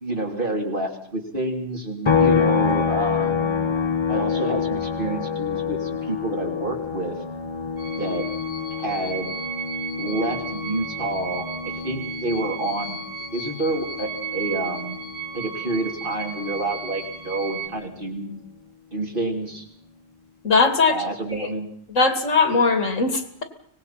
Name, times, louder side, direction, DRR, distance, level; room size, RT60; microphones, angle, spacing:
voice 1, 0.0-3.6 4.1-7.1 8.0-8.3 8.7-9.3 10.0-13.0 13.3-15.0 15.3-18.4 18.9-19.6 20.9-21.7, right 2 dB, 40° right, 1 dB, 3.2 m, -28 dB
sound 1, 2.1-15.6 15.9-18.1, left 6 dB, 25° left, 1.0 m, -27 dB
sound 2, 7.8-17.7, right 6 dB, 45° left, 2.0 m, -34 dB
voice 2, 20.4-20.9 21.4-21.5 21.9-23.4, left 4 dB, 80° left, 7 dB, 2.8 m, -19 dB
24.5 x 19.5 x 5.8 m, 0.64 s
omnidirectional pair, 1.3 m